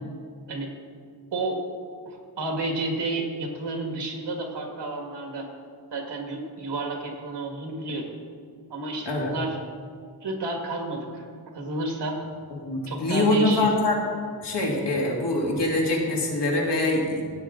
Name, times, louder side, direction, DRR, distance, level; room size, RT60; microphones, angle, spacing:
voice 1, 1.3-1.6 2.1-5.5 5.9-8.1 8.7-9.6 10.2-11.3 11.5-12.2 12.9-13.8, right 2 dB, 90° right, 2 dB, 1.9 m, -31 dB
voice 2, 12.6-14.0 14.4-17.2, left 2 dB, 90° left, -2 dB, 2.3 m, -24 dB
15.0 x 8.4 x 3.8 m, 2.1 s
wide cardioid pair, 145°, 40 cm